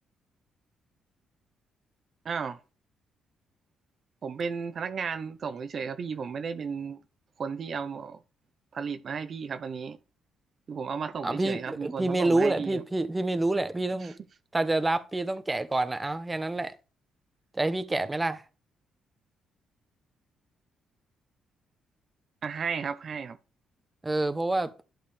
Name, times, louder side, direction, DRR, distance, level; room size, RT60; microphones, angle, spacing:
voice 1, 2.2-2.6 4.2-7.0 7.4-8.2 8.7-10.0 10.7-12.8 14.0-14.1 22.4-23.4, right 6 dB, 50° right, 0.7 m, -34 dB
voice 2, 11.2-14.1 14.5-16.7 17.5-18.4 24.0-24.7, right 2 dB, 15° right, 0.9 m, -27 dB
11.5 x 6.4 x 3.4 m
cardioid pair, 90°, 0 cm